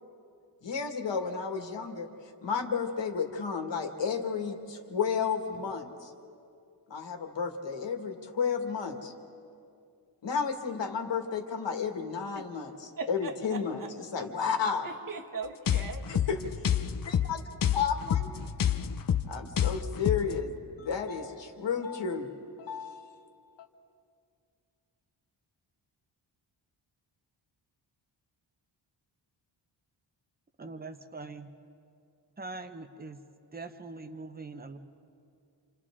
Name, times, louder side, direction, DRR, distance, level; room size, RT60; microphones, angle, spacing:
voice 1, 0.6-6.1 6.9-9.1 10.2-14.9 16.1-16.4 17.0-18.3 18.6-18.8 19.3-23.7, left 6 dB, 70° left, 4 dB, 2.0 m, -32 dB
voice 2, 13.0-13.9 14.8-16.1, right 4 dB, 45° right, 5 dB, 1.5 m, -39 dB
sound 1, 15.7-20.4, left 9 dB, 50° left, 0.7 m, -29 dB
voice 3, 30.6-31.5 32.4-33.2 33.5-34.8, right 3 dB, 20° right, 8 dB, 1.0 m, -42 dB
28.5 x 27.5 x 3.7 m, 2.4 s
wide cardioid pair, 135°, 45 cm